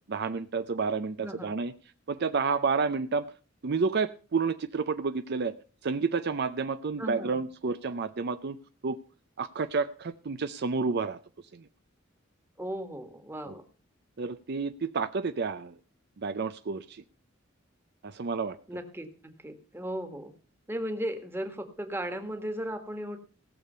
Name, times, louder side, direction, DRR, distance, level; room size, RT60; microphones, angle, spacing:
voice 1, 0.1-1.7 2.1-3.3 3.6-5.5 5.8-8.6 8.8-9.0 9.4-11.2 11.5-11.7 13.5-13.6 14.2-15.8 16.2-17.0 18.0-18.6, right 4 dB, 55° right, 11 dB, 0.5 m, -30 dB
voice 2, 1.2-1.5 7.0-7.4 12.6-13.6 18.7-20.3 20.7-23.2, equal, 10° right, 6 dB, 1.6 m, -36 dB
17.5 x 6.8 x 5.5 m, 0.37 s
head